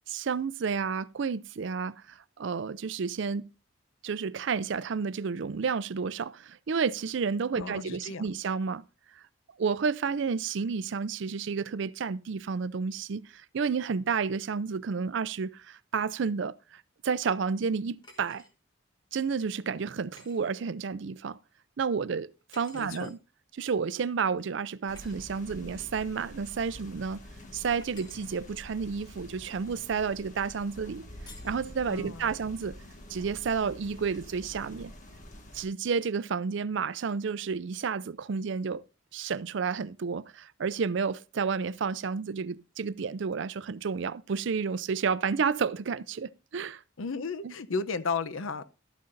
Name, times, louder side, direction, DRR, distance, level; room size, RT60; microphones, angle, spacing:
voice 1, 0.1-3.4 4.0-8.8 9.2-9.3 9.6-18.4 19.1-21.4 21.8-23.2 23.5-27.2 27.5-31.0 31.4-32.8 33.1-34.9 35.5-38.8 39.1-46.8 47.4-47.5, right 5 dB, 65° right, 0.4 m, -31 dB
voice 2, 7.5-8.2 22.7-23.1 31.9-32.3 47.0-48.6, left 4 dB, 80° left, 0.7 m, -34 dB
sound 1, 18.0-18.5 20.1-20.4 22.5-23.2 24.9-25.2 27.8-28.3 31.3-31.6, left 3 dB, 20° left, 1.4 m, -52 dB
sound 2, 24.9-35.7, left 1 dB, 40° left, 1.7 m, -47 dB
12.5 x 9.5 x 2.6 m
head